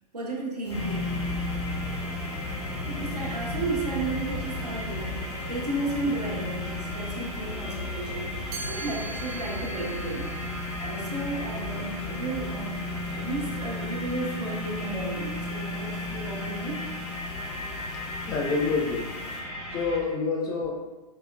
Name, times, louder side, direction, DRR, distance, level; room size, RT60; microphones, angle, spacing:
voice 1, 0.1-1.2 2.9-10.3 10.8-16.9, right 2 dB, 85° right, -3 dB, 0.8 m, -33 dB
sound 1, 0.6-19.4, left 2 dB, 80° left, 0.7 m, -45 dB
sound 2, 0.7-20.0, left 2 dB, 45° left, 0.9 m, -34 dB
Chime, 8.5-14.4, right 3 dB, 45° right, 0.7 m, -44 dB
voice 2, 18.2-19.1 19.7-20.7, left 4 dB, 20° left, 0 dB, 0.4 m, -27 dB
4.7 x 2.0 x 2.4 m, 1.2 s
figure-of-eight pair, 100°, 20 cm